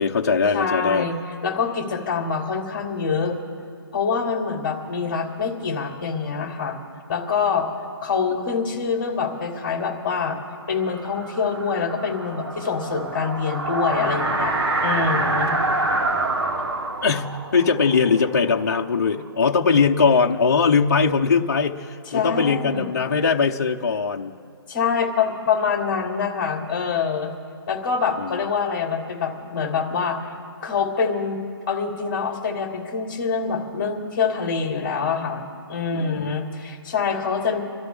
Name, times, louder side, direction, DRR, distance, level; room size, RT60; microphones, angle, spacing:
voice 1, 0.0-1.1 17.0-24.3 28.2-28.5 35.9-36.3, left 5 dB, 45° left, 0 dB, 0.9 m, -21 dB
voice 2, 0.5-3.3 3.9-6.8 7.1-7.7 8.0-10.4 10.7-14.5 14.8-15.5 22.1-22.8 24.7-27.3 27.7-30.3 30.6-31.4 31.7-37.6, left 5 dB, 20° left, 1 dB, 2.8 m, -25 dB
sound 1, 10.6-19.3, right 2 dB, 90° right, 1.9 m, -27 dB
28.0 x 13.0 x 3.5 m, 2.3 s
hypercardioid pair, 180°, 13 cm